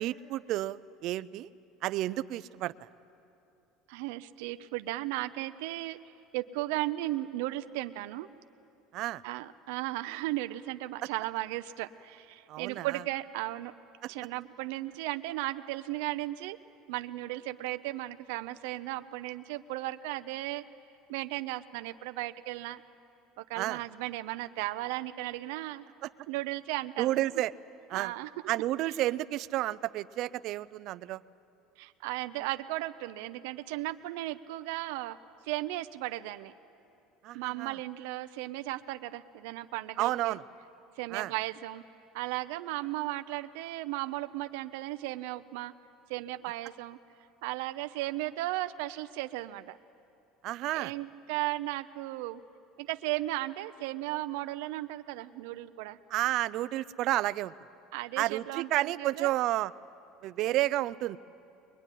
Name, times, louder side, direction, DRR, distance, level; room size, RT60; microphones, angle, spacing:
voice 1, 0.0-1.5 1.8-2.9 8.9-9.2 12.5-13.0 23.5-23.8 26.0-26.1 27.0-27.5 27.9-28.1 28.5-31.2 37.2-37.8 40.0-40.4 41.1-41.3 50.4-50.9 56.1-57.5 58.2-59.7 60.2-61.2, right 15 dB, 45° right, 16 dB, 0.5 m, -31 dB
voice 2, 3.9-6.0 6.3-8.3 9.2-13.7 14.1-16.6 16.9-20.6 21.1-22.8 23.4-25.8 26.3-27.1 27.9-28.3 31.8-35.2 35.4-36.5 37.3-40.4 41.0-41.8 42.1-45.7 46.1-47.0 47.4-49.8 50.7-52.4 52.8-56.0 57.9-59.3, right 17 dB, 80° right, 10 dB, 0.7 m, -35 dB
23.0 x 22.5 x 10.0 m, 2.7 s
cardioid pair, 165°, 0 cm